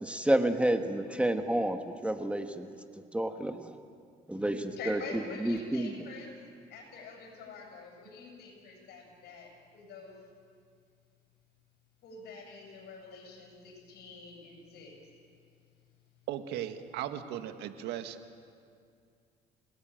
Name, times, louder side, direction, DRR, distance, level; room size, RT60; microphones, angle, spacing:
voice 1, 0.0-2.7 3.1-3.8 4.3-5.0 5.4-5.9, right 1 dB, 5° right, 6 dB, 1.4 m, -29 dB
voice 2, 4.7-6.4 6.7-10.2 12.0-15.0, left 3 dB, 75° left, 2 dB, 8.0 m, -46 dB
voice 3, 16.3-18.2, right 11 dB, 90° right, 8 dB, 1.6 m, -37 dB
29.5 x 18.5 x 9.1 m, 2.3 s
cardioid pair, 110°, 17 cm